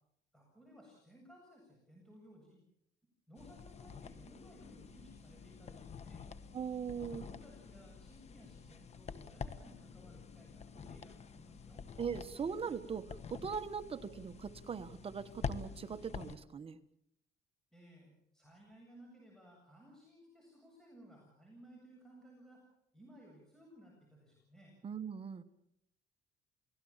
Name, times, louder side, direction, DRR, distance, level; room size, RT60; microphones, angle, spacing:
voice 1, 0.3-2.6 3.3-6.2 7.1-11.8 17.7-22.7 22.9-24.7, equal, 5° left, -1 dB, 7.9 m, -59 dB
sound 1, 3.4-16.4, left 6 dB, 40° left, 1.4 m, -48 dB
voice 2, 6.5-7.2 12.0-16.8 24.8-25.4, right 6 dB, 35° right, 10 dB, 1.2 m, -40 dB
29.0 x 18.0 x 7.3 m, 0.77 s
cardioid pair, 125°, 17 cm